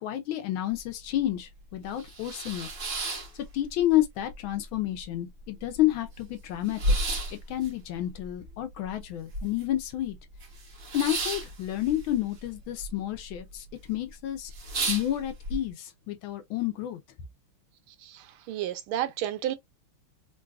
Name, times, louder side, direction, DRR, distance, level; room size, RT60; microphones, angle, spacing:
voice 1, 0.0-2.7 3.5-7.0 7.5-10.2 10.9-14.5 14.9-17.0, left 13 dB, 75° left, 1.3 m, -30 dB
sound 1, 0.8-0.9 1.2-1.3 1.8-4.0 4.3-5.0 5.4-5.5 5.7-9.8 10.1-12.9 13.1-13.7 14.1-14.2 14.5-15.6, right 1 dB, 45° right, 1.1 m, -32 dB
voice 2, 18.5-19.6, right 12 dB, 80° right, 1.4 m, -30 dB
3.8 x 2.5 x 2.2 m
omnidirectional pair, 2.4 m